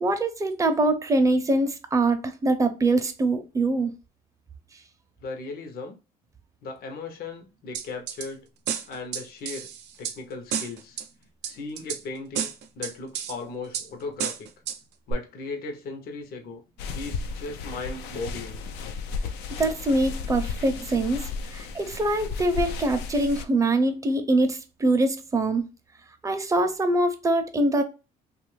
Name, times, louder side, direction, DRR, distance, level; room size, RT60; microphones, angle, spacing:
voice 1, 0.0-3.9 19.6-25.6 26.2-27.8, right 2 dB, 20° right, 0.6 m, -24 dB
voice 2, 5.2-6.0 6.6-8.5 8.9-9.7 10.0-11.0 11.4-12.5 12.7-14.5 15.1-16.6 16.9-18.6, left 3 dB, 65° left, 0.8 m, -37 dB
sound 1, 7.7-8.3 8.7-10.2 10.5-11.1 11.4-12.0 12.3-13.3 13.7-13.9 14.2-14.8 15.1-15.2, right 8 dB, 85° right, 0.5 m, -31 dB
sound 2, 16.8-23.4, left 4 dB, 90° left, 0.5 m, -34 dB
2.8 x 2.4 x 3.1 m
cardioid pair, 110°, 17 cm